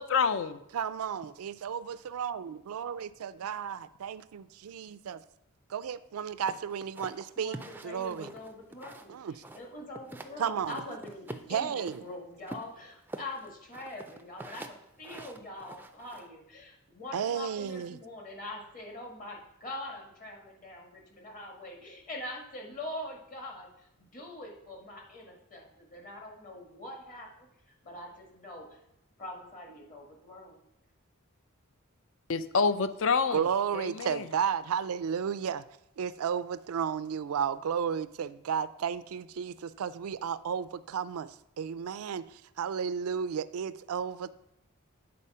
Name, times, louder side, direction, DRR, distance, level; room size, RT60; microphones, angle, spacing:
voice 1, 0.0-0.6 32.3-33.4 33.7-34.3, left 5 dB, 60° left, 12 dB, 0.5 m, -27 dB
voice 2, 0.7-5.2 5.7-7.6 7.8-8.3 9.1-9.3 10.4-10.8 11.5-12.0 17.1-18.0 33.3-35.6 36.0-44.3, right 7 dB, 85° right, 16 dB, 0.4 m, -33 dB
sound 1, 6.5-9.1 9.4-10.3 10.7-12.0 12.5-16.3, right 2 dB, 10° right, 0.3 m, -45 dB
voice 3, 7.4-27.5 27.8-28.8 29.2-30.6, left 1 dB, 40° left, 0 dB, 1.6 m, -43 dB
8.6 x 4.1 x 5.5 m, 0.81 s
head